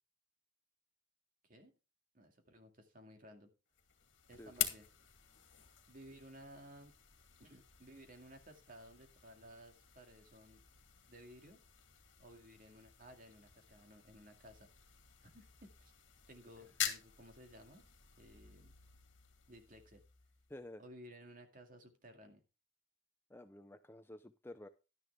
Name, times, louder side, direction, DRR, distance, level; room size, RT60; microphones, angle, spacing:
voice 1, 2.1-3.5 4.3-4.9 5.9-6.9 7.4-10.6 11.1-11.6 12.2-14.7 15.2-15.9 16.3-17.9 18.2-18.7 19.5-20.0 20.8-22.4, equal, 45° right, 5 dB, 2.2 m, -57 dB
sound 1, 3.7-20.7, left 11 dB, 65° left, 2.3 m, -47 dB
voice 2, 20.5-20.8 23.3-24.7, left 1 dB, 10° left, 9 dB, 0.5 m, -52 dB
12.0 x 10.0 x 3.4 m, 0.30 s
head